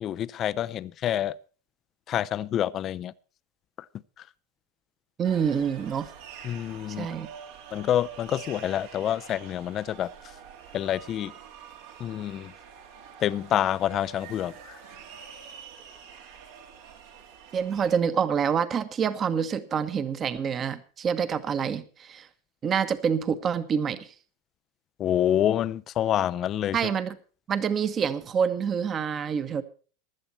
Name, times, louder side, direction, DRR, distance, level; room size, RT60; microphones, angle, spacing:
voice 1, 0.0-1.3 2.1-3.1 4.2-4.3 6.4-7.1 7.7-10.1 10.7-11.3 12.0-12.5 13.2-14.8 25.0-26.9, left 11 dB, 40° left, 0.5 m, -27 dB
voice 2, 5.2-6.1 7.0-7.3 17.5-22.3 22.6-24.1 26.7-27.1 27.5-29.6, right 7 dB, 30° right, 1.3 m, -27 dB
sound 1, 5.2-18.0, right 7 dB, 70° right, 3.1 m, -46 dB
16.0 x 11.5 x 4.3 m
hypercardioid pair, 105°, 0 cm